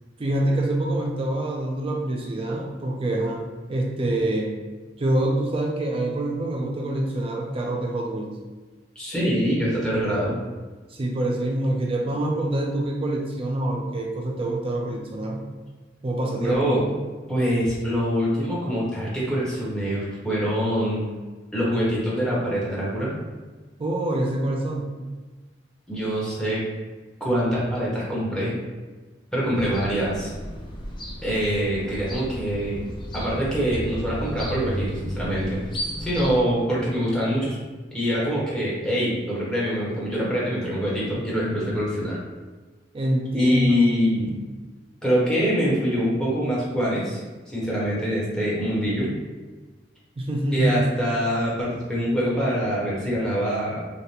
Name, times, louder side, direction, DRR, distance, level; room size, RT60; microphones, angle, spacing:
voice 1, 0.2-3.4 3.7-4.6 5.0-8.3 10.9-15.5 16.0-16.8 23.8-24.9 42.9-43.9 50.2-50.9, right 1 dB, 30° right, 0 dB, 0.4 m, -26 dB
voice 2, 8.9-10.4 16.4-16.9 17.3-21.0 21.5-23.1 25.9-26.6 27.2-28.6 29.3-30.3 31.2-32.8 33.1-35.6 36.0-37.6 37.9-42.2 43.3-44.3 45.0-47.2 47.5-49.1 50.5-53.8, equal, 5° left, -7 dB, 1.0 m, -24 dB
sound 1, 29.5-36.4, equal, 25° left, 0.5 m, -34 dB
5.0 x 2.1 x 2.8 m, 1.3 s
head